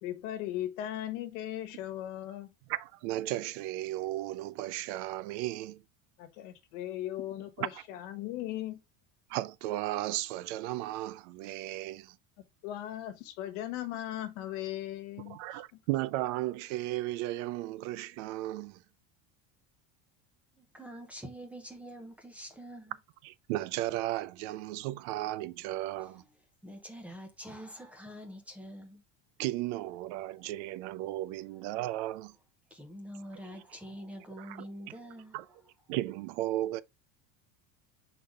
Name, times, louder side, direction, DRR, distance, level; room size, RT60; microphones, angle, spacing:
voice 1, 0.0-2.5 6.2-8.8 12.6-15.6, left 13 dB, 65° left, 1.4 m, -38 dB
voice 2, 2.7-5.8 7.6-7.8 9.3-12.2 15.3-18.8 23.2-26.2 29.4-32.3 34.4-34.7 35.3-35.4 35.9-36.8, right 16 dB, 65° right, 0.5 m, -35 dB
voice 3, 20.6-23.0 24.7-24.8 26.0-26.3 26.6-29.0 30.2-30.5 32.7-35.5, equal, 5° right, 0.9 m, -46 dB
6.5 x 4.1 x 3.6 m
cardioid pair, 165°, 38 cm